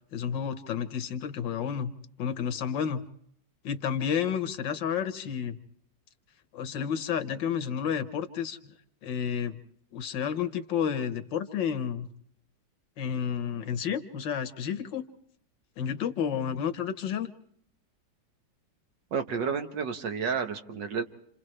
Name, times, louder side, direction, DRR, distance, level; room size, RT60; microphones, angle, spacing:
voice 1, 0.1-1.9 2.2-3.0 3.6-5.6 6.5-8.7 9.0-9.6 9.9-12.1 13.0-15.0 15.8-17.3, left 8 dB, 85° left, 9 dB, 1.8 m, -31 dB
voice 2, 19.1-21.0, right 6 dB, 75° right, 6 dB, 1.8 m, -31 dB
28.5 x 27.5 x 3.3 m, 0.71 s
omnidirectional pair, 1.9 m